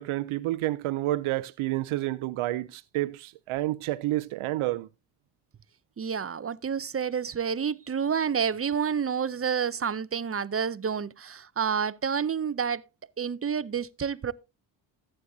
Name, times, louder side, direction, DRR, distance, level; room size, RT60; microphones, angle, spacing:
voice 1, 0.0-4.9, right 16 dB, 90° right, 0.6 m, -29 dB
voice 2, 6.0-12.8 13.2-14.3, right 7 dB, 30° right, 0.6 m, -29 dB
14.0 x 8.8 x 2.7 m
cardioid pair, 80°, 48 cm